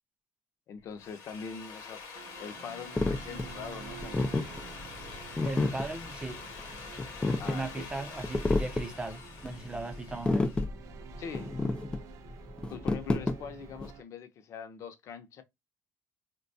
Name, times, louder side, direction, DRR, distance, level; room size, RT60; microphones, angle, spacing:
voice 1, 0.7-2.0 2.4-4.3 7.4-7.9 11.2-11.5 12.7-15.4, left 6 dB, 55° left, 0.7 m, -43 dB
Drill, 0.8-10.6, left 5 dB, 90° left, 0.9 m, -46 dB
sound 1, 2.1-14.0, right 10 dB, 65° right, 0.4 m, -50 dB
sound 2, 3.0-13.9, left 2 dB, 15° left, 0.3 m, -31 dB
voice 2, 5.4-6.4 7.4-10.5, right 2 dB, 15° right, 0.6 m, -37 dB
3.8 x 2.2 x 2.6 m
cardioid pair, 125°, 6 cm